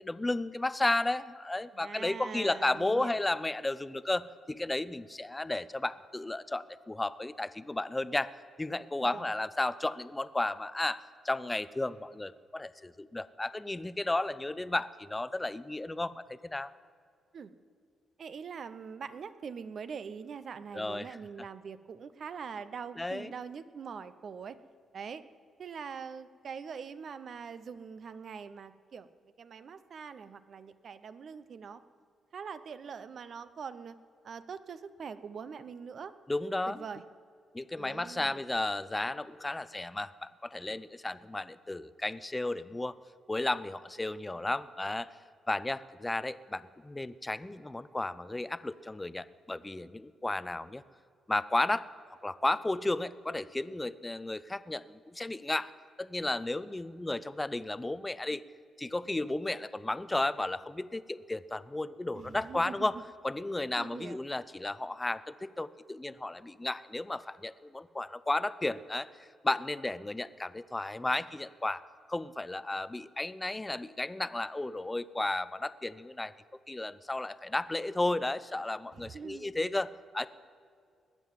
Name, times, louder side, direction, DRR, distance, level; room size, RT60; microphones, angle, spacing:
voice 1, 0.0-8.3 8.6-16.7 20.7-21.2 23.0-23.3 36.3-36.8 37.5-43.0 43.3-45.1 45.5-50.8 51.3-51.9 52.2-55.7 56.0-58.4 58.8-63.0 63.2-71.8 72.1-76.3 76.7-80.3, left 2 dB, 15° left, 16 dB, 0.5 m, -33 dB
voice 2, 1.7-3.2 9.1-9.3 17.3-17.5 18.2-24.6 24.9-25.2 25.6-31.8 32.3-34.0 34.2-36.1 36.7-37.0 37.8-38.4 62.1-62.9 63.8-64.2 78.9-79.4, right 6 dB, 55° right, 13 dB, 0.7 m, -43 dB
20.0 x 7.6 x 7.5 m, 2.2 s
cardioid pair, 100°, 0 cm